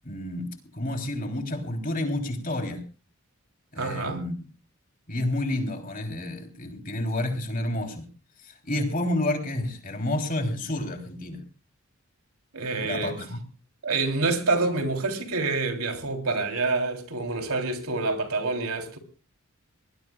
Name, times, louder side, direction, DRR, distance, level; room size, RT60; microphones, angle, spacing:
voice 1, 0.0-2.8 3.7-4.3 5.1-8.1 8.4-11.4 12.8-13.4, left 1 dB, 40° left, 3.3 m, -30 dB
voice 2, 3.8-4.2 12.5-13.2 13.8-19.0, right 3 dB, 85° right, 3.4 m, -27 dB
23.5 x 19.5 x 2.4 m
head